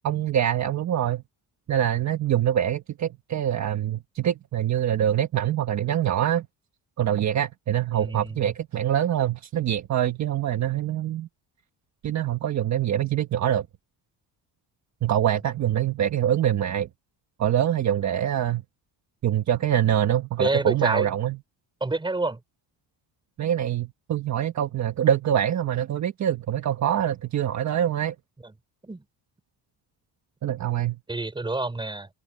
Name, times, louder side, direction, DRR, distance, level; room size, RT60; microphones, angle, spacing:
voice 1, 0.0-1.2 1.7-6.5 7.0-11.3 12.0-13.7 15.0-16.9 17.4-18.6 19.2-21.4 23.4-28.1 30.4-31.0, right 10 dB, 40° right, 1.3 m, -24 dB
voice 2, 7.9-8.5 20.4-21.1 21.8-22.4 28.4-28.5 28.8-29.0 31.1-32.1, right 2 dB, 10° right, 4.8 m, -28 dB
open air
cardioid pair, 180°, 42 cm